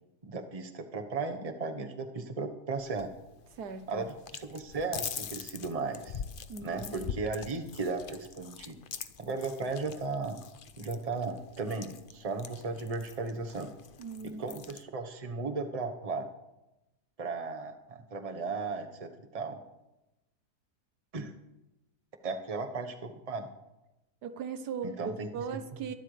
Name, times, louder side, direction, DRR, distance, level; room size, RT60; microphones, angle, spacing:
voice 1, 0.2-3.1 3.9-6.2 6.6-8.8 9.2-10.4 10.8-13.7 14.2-16.3 17.2-19.6 21.1-21.3 22.2-23.5 24.8-25.3, right 3 dB, 25° right, 5 dB, 1.1 m, -36 dB
sound 1, 2.8-14.8, left 7 dB, 50° left, 0.6 m, -44 dB
voice 2, 3.6-4.0 6.5-7.1 14.0-14.6 24.2-25.9, right 5 dB, 85° right, 9 dB, 1.6 m, -39 dB
23.0 x 12.0 x 3.3 m, 0.95 s
omnidirectional pair, 1.7 m